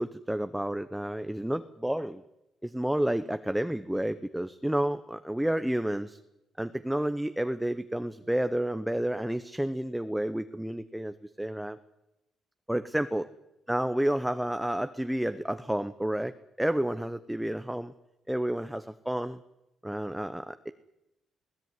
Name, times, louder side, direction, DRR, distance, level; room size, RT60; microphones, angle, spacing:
voice 1, 0.0-2.2 2.6-6.2 6.6-11.8 12.7-13.3 13.7-17.9 18.3-19.4 19.8-20.7, right 1 dB, 5° right, 10 dB, 0.9 m, -30 dB
21.0 x 17.5 x 9.6 m, 0.92 s
cardioid pair, 90°, 0 cm